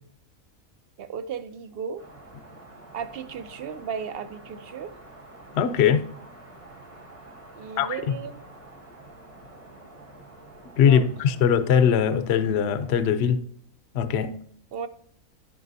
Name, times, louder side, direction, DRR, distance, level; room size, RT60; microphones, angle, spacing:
voice 1, 1.0-2.0 2.9-4.9 7.5-8.4 10.9-11.0 11.3-11.4 14.7-14.9, right 7 dB, 60° right, 0.7 m, -35 dB
sound 1, 2.0-13.1, right 2 dB, 85° right, 4.6 m, -48 dB
voice 2, 5.5-6.1 7.8-8.2 10.8-13.4 13.9-14.4, left 8 dB, 55° left, 0.8 m, -21 dB
15.0 x 5.2 x 2.7 m
omnidirectional pair, 1.5 m